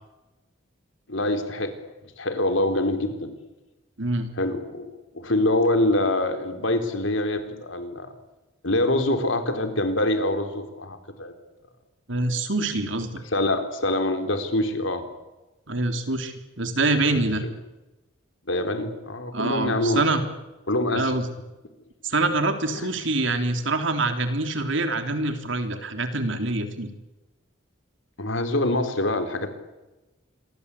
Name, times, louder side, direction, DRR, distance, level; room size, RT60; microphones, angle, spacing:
voice 1, 1.1-1.7 2.2-3.3 4.4-8.1 8.6-11.3 13.3-15.0 18.5-20.0 20.7-21.1 22.7-22.9 28.2-29.6, left 1 dB, 65° left, 7 dB, 4.0 m, -25 dB
voice 2, 4.0-4.3 12.1-13.2 15.7-17.4 19.3-20.2 20.9-21.3 22.0-26.9, right 2 dB, 65° right, 7 dB, 3.5 m, -25 dB
27.0 x 22.5 x 8.5 m, 1.1 s
head